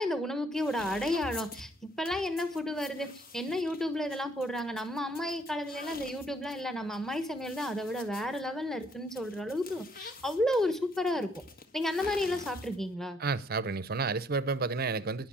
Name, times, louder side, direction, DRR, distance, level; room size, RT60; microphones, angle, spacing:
voice 1, 0.0-11.3 11.7-13.2, left 1 dB, ahead, 1.2 m, -32 dB
sound 1, 0.5-12.9, left 3 dB, 45° left, 1.6 m, -48 dB
voice 2, 13.2-15.3, right 4 dB, 45° right, 0.7 m, -31 dB
11.5 x 10.5 x 8.7 m
head